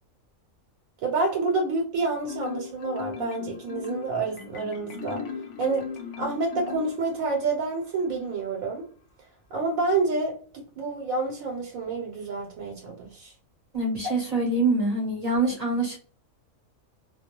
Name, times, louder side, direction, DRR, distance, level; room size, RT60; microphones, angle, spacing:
voice 1, 1.0-5.2 5.6-5.9 6.2-8.8 9.5-13.3, right 3 dB, 80° right, 0 dB, 1.1 m, -28 dB
Marimba xylophone, 2.3-7.4, left 6 dB, 70° left, 0.8 m, -36 dB
voice 2, 13.7-16.0, right 2 dB, 35° right, -3 dB, 0.7 m, -25 dB
2.3 x 2.2 x 2.8 m, 0.41 s
omnidirectional pair, 1.4 m